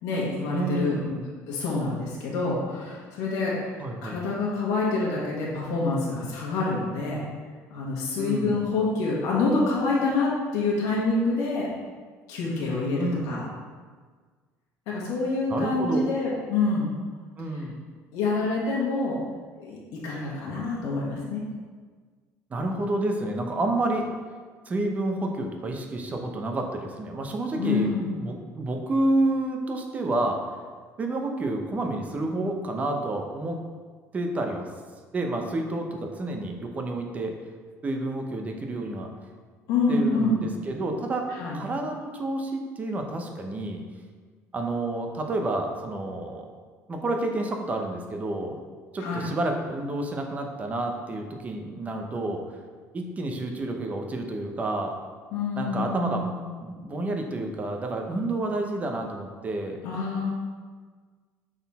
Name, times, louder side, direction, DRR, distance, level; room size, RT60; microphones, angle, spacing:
voice 1, 0.0-1.0 1.5-7.2 7.7-11.7 12.3-13.4 14.9-16.9 18.1-19.2 19.6-21.4 27.6-28.1 39.7-40.4 41.4-41.6 49.0-49.3 55.3-56.4 59.8-60.2, left 3 dB, 85° left, -5 dB, 1.5 m, -27 dB
voice 2, 0.5-1.3 3.8-4.2 8.2-8.6 13.0-13.4 15.5-16.1 17.4-17.8 22.5-24.1 24.7-27.9 28.2-30.4 31.0-33.6 34.1-34.7 35.1-37.3 37.8-39.1 39.9-41.3 41.5-43.8 44.5-46.5 46.9-48.6 48.9-52.4 52.9-54.9 55.6-56.3 56.6-59.8, right 2 dB, 25° right, 3 dB, 0.8 m, -29 dB
6.3 x 4.1 x 4.1 m, 1.5 s
cardioid pair, 130°, 6 cm